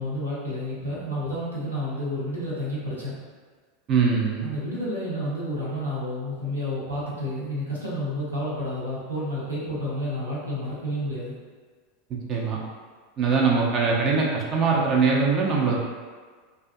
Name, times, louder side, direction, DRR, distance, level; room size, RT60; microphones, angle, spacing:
voice 1, 0.0-3.1 4.4-11.3, equal, 90° right, -8 dB, 0.7 m, -30 dB
voice 2, 3.9-4.4 12.3-12.6 13.2-15.8, right 4 dB, 35° right, -3 dB, 0.5 m, -22 dB
2.5 x 2.3 x 2.5 m, 1.5 s
figure-of-eight pair, 85°, 0 cm